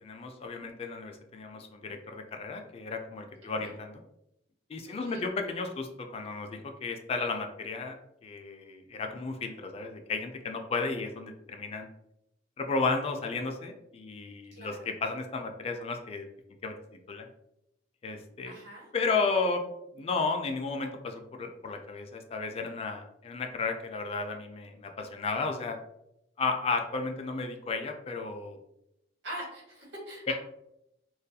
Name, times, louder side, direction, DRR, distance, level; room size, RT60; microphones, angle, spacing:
voice 1, 0.0-4.0 4.7-8.0 8.2-11.9 12.6-16.3 16.6-16.7 17.1-17.3 18.0-18.5 18.9-25.8 26.4-28.6 30.3-30.4, left 4 dB, 35° left, 4 dB, 0.3 m, -33 dB
voice 2, 3.4-3.8 4.9-5.2 14.5-14.9 18.4-18.9 29.2-30.3, right 1 dB, 70° right, -4 dB, 1.2 m, -43 dB
2.3 x 2.2 x 2.6 m, 0.82 s
head